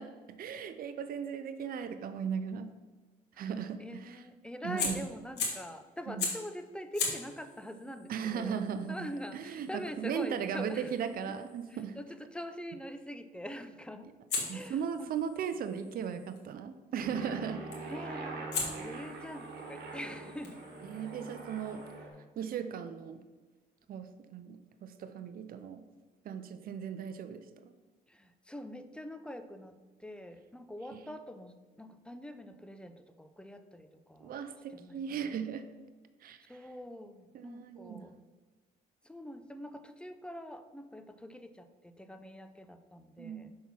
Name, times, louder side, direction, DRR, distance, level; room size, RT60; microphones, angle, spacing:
voice 1, 0.0-2.7 3.4-4.2 4.6-5.1 6.1-6.3 8.1-12.0 14.5-17.7 20.9-21.9 22.4-23.2 23.9-25.8 26.2-27.7 30.9-31.0 34.2-35.7 36.2-36.4 37.3-38.1 43.2-43.6, right 7 dB, 60° right, 10 dB, 0.5 m, -37 dB
voice 2, 3.3-8.6 8.9-10.9 11.3-11.4 11.7-14.1 14.5-15.2 17.9-20.6 28.1-34.3 34.7-35.5 36.5-38.1 39.0-43.5, equal, 5° left, 9 dB, 0.6 m, -44 dB
Fire, 4.8-5.7 6.2-6.5 6.9-11.9 14.3-16.4 17.7-18.0 18.5-21.9, left 4 dB, 80° left, 1.7 m, -40 dB
Aircraft, 17.0-22.1, right 3 dB, 75° right, 1.4 m, -43 dB
5.6 x 4.3 x 5.9 m, 1.3 s
cardioid pair, 90°, 17 cm